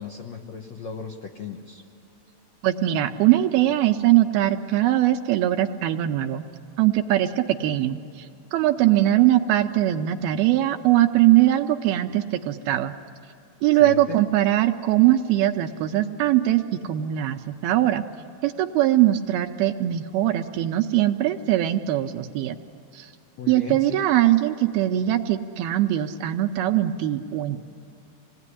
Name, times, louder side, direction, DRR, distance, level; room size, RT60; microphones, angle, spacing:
voice 1, 0.0-1.8 13.8-14.2 23.4-24.0, left 5 dB, 80° left, 3 dB, 1.5 m, -36 dB
voice 2, 2.6-6.4 6.8-12.9 13.6-18.0 18.4-22.6 22.9-23.1 23.5-27.6, right 13 dB, 80° right, 6 dB, 2.3 m, -21 dB
27.0 x 19.0 x 9.8 m, 2.7 s
omnidirectional pair, 4.9 m